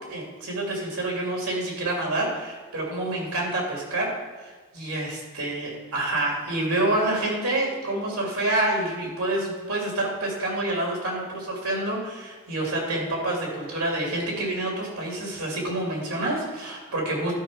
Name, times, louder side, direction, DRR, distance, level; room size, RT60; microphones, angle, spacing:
voice 1, 0.1-4.1 4.4-17.3, right 1 dB, 90° right, -2 dB, 3.3 m, -28 dB
12.0 x 5.3 x 5.6 m, 1.3 s
head